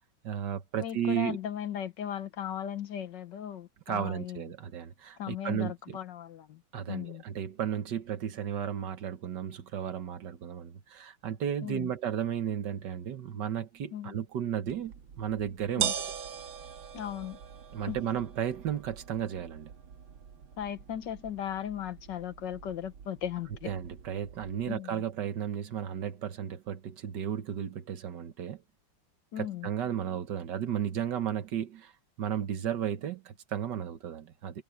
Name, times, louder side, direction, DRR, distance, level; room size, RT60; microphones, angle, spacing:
voice 1, 0.2-1.4 3.9-6.0 6.7-15.9 17.7-19.7 23.7-28.6 29.4-31.9 32.2-34.6, right 9 dB, 65° right, 1.7 m, -34 dB
voice 2, 0.8-4.4 5.2-6.6 6.9-7.2 11.6-11.9 13.9-14.1 15.8-15.9 16.9-17.4 17.9-18.0 20.6-23.7 24.7-25.0 29.3-29.7, left 10 dB, 70° left, 1.7 m, -37 dB
sound 1, 14.7-24.7, right 9 dB, 90° right, 2.2 m, -41 dB
omnidirectional pair, 2.1 m